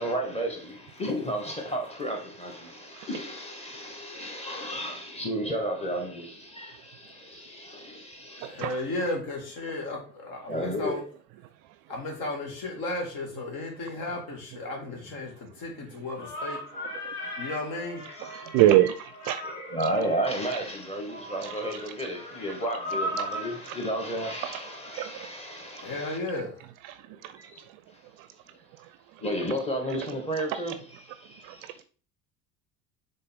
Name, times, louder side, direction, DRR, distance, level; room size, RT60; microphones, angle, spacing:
voice 1, 0.0-8.7 10.5-11.1 14.6-15.0 18.1-18.6 19.4-26.2 27.4-27.6 27.9-28.0 29.2-31.8, equal, 15° left, 1.8 m, -33 dB
voice 2, 8.4-11.0 11.9-16.6 17.4-18.0 25.8-26.6, left 2 dB, 50° left, 2.2 m, -34 dB
sound 1, 16.2-25.6, equal, 75° left, 2.1 m, -38 dB
voice 3, 18.3-19.4 25.0-25.3 26.8-27.0 27.2-27.3 31.4-31.5, right 13 dB, 45° right, 0.5 m, -24 dB
6.6 x 4.0 x 3.6 m
figure-of-eight pair, 65°, 46 cm